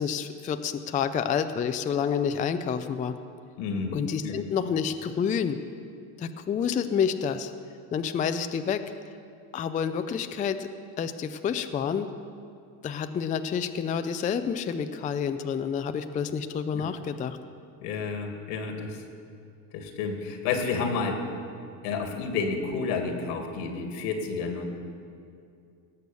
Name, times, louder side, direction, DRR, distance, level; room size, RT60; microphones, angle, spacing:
voice 1, 0.0-3.1 3.9-5.6 6.2-7.5 7.9-8.8 9.5-10.7 11.0-12.1 12.8-17.4, left 7 dB, 20° left, 9 dB, 0.4 m, -28 dB
voice 2, 3.6-4.0 4.2-4.3 17.8-19.0 19.7-21.2 21.8-24.6, left 4 dB, 80° left, 4 dB, 2.2 m, -30 dB
18.5 x 6.7 x 6.9 m, 2.4 s
supercardioid pair, 110°, 46 cm